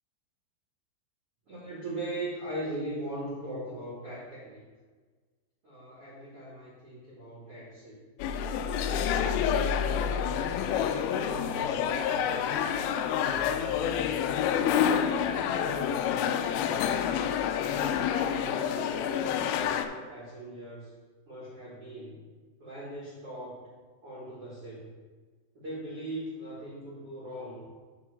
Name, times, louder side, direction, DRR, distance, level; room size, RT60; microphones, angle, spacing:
voice 1, 1.5-4.6 5.6-8.0 8.8-12.6 13.1-14.2 14.8-17.0 17.7-20.9 21.3-22.2 22.6-23.6 24.0-24.9 25.5-27.7, right 1 dB, 80° right, -7 dB, 1.3 m, -40 dB
sound 1, 8.2-19.9, left 8 dB, 85° left, 3.1 m, -28 dB
7.6 x 3.7 x 6.3 m, 1.4 s
omnidirectional pair, 5.7 m